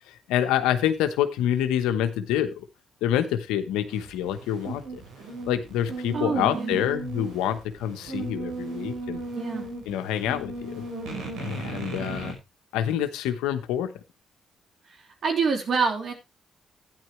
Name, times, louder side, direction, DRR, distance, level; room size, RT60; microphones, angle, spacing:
voice 1, 0.1-2.6 3.0-5.0 5.5-9.2 9.8-10.8 11.4-12.4 12.7-13.9, left 10 dB, 85° left, 9 dB, 1.0 m, -27 dB
sound 1, 3.9-12.3, right 3 dB, 80° right, 5.0 m, -36 dB
voice 2, 6.1-6.9 9.3-9.7 14.9-16.1, right 5 dB, 60° right, 3 dB, 3.4 m, -27 dB
12.0 x 10.0 x 3.2 m, 0.24 s
supercardioid pair, 55°, 0 cm